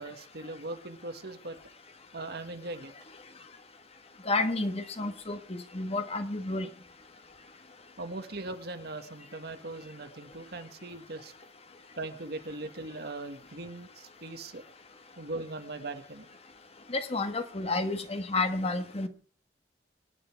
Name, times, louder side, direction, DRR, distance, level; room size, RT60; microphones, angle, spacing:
voice 1, 0.0-1.6 2.1-2.9 8.0-11.3 12.0-14.6 15.2-16.3, right 2 dB, 60° right, 7 dB, 1.7 m, -40 dB
voice 2, 4.3-6.7 16.9-19.1, left 2 dB, 35° left, 8 dB, 1.4 m, -30 dB
24.0 x 9.7 x 4.6 m, 0.41 s
head